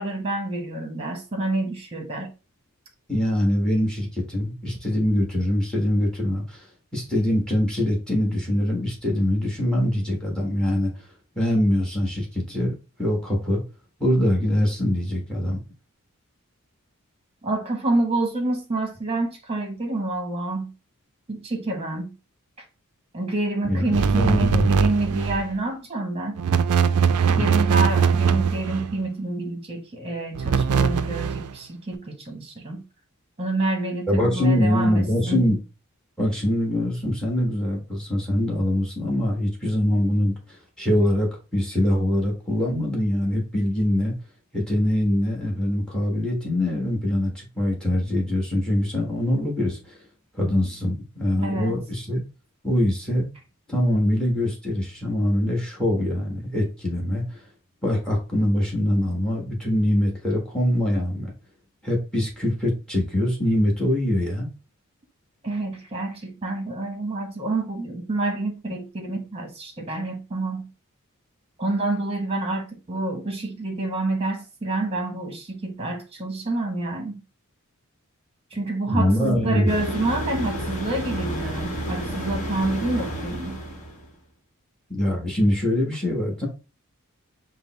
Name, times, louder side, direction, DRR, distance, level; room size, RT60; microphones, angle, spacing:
voice 1, 0.0-2.3 17.4-20.7 21.3-22.1 23.1-26.4 27.3-32.8 33.4-35.4 51.4-51.8 65.4-70.7 71.6-77.2 78.5-83.6, right 2 dB, 25° right, 1.1 m, -28 dB
voice 2, 3.1-6.6 6.9-10.9 11.4-13.6 14.0-15.6 23.7-24.7 27.3-27.4 34.1-35.6 36.2-40.3 40.8-44.1 44.5-49.9 50.4-52.2 52.6-53.3 53.7-57.2 57.8-61.3 61.8-64.5 78.9-79.7 84.9-86.5, left 1 dB, 5° left, 1.3 m, -23 dB
sound 1, 23.9-25.5 26.4-29.0 30.3-31.5, right 6 dB, 85° right, 0.4 m, -21 dB
sound 2, 79.7-84.1, right 1 dB, 35° left, 1.2 m, -31 dB
5.2 x 2.0 x 3.9 m
head